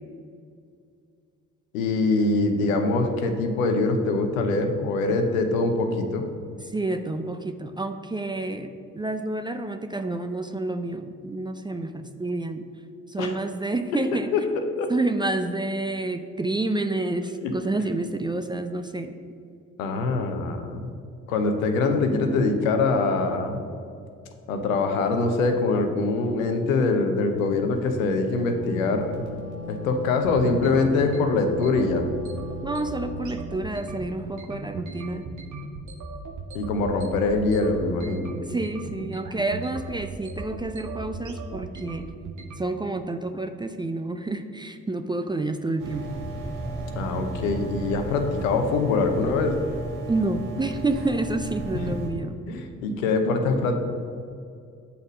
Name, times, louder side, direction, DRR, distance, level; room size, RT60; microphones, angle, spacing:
voice 1, 1.7-6.3 13.2-13.4 14.3-14.9 17.4-17.5 19.8-20.9 21.3-23.6 24.5-29.2 29.7-32.1 36.5-38.3 47.0-49.6 51.9-52.0 52.5-53.8, left 3 dB, 85° left, 5 dB, 0.7 m, -24 dB
voice 2, 6.7-12.7 13.1-14.3 14.9-19.1 32.6-35.3 38.4-42.1 42.6-46.1 50.1-52.4, right 2 dB, 10° right, 8 dB, 0.4 m, -29 dB
sound 1, 27.4-42.6, right 3 dB, 50° right, 0.9 m, -38 dB
Wind instrument woodwind instrument, 28.2-33.4, right 1 dB, 20° left, 1.4 m, -39 dB
sound 2, 45.8-52.1, right 2 dB, 85° right, 1.4 m, -34 dB
8.0 x 4.2 x 5.0 m, 2.4 s
hypercardioid pair, 45°, 39 cm